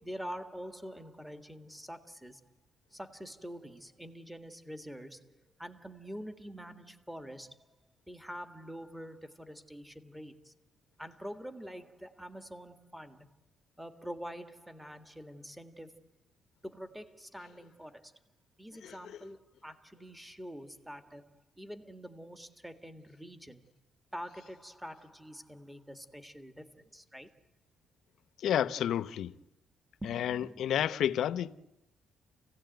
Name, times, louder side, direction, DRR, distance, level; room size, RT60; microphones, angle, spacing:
voice 1, 0.0-2.4 2.9-7.7 8.1-10.5 11.0-13.3 13.8-16.0 16.6-18.1 18.6-23.7 24.1-27.3 30.0-30.7, equal, 5° right, 1.8 m, -46 dB
voice 2, 28.4-29.3 30.1-31.6, left 10 dB, 70° left, 0.9 m, -30 dB
30.0 x 17.0 x 9.2 m
cardioid pair, 135°, 0 cm